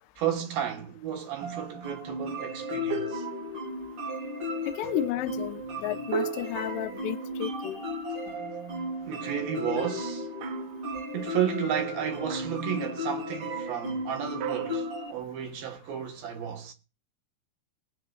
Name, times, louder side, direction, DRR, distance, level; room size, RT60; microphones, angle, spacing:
voice 1, 0.2-3.3 9.1-10.3 11.1-16.7, right 9 dB, 70° right, 3.0 m, -32 dB
sound 1, 1.4-15.1, left 1 dB, 45° right, 1.9 m, -35 dB
sound 2, 2.9-3.9 6.1-7.8 10.4-10.9 12.3-12.8 14.4-15.6, right 9 dB, 90° right, 1.9 m, -37 dB
voice 2, 4.7-7.8, left 13 dB, 80° left, 2.6 m, -32 dB
20.5 x 8.5 x 2.4 m
omnidirectional pair, 4.8 m